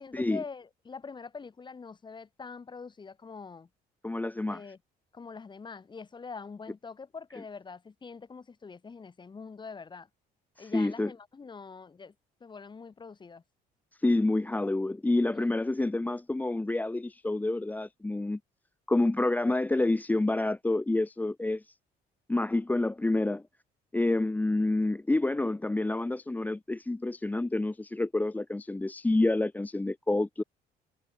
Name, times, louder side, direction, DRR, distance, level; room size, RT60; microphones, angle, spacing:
voice 1, 0.0-3.7 4.5-4.8 5.1-10.1 10.6-12.1 12.4-13.4 15.3-15.6, left 5 dB, 25° left, 3.7 m, -44 dB
voice 2, 4.0-4.6 10.6-11.1 14.0-18.4 18.9-21.7 22.3-23.4 23.9-30.4, left 2 dB, 10° left, 0.9 m, -28 dB
cardioid pair, 110°, 17 cm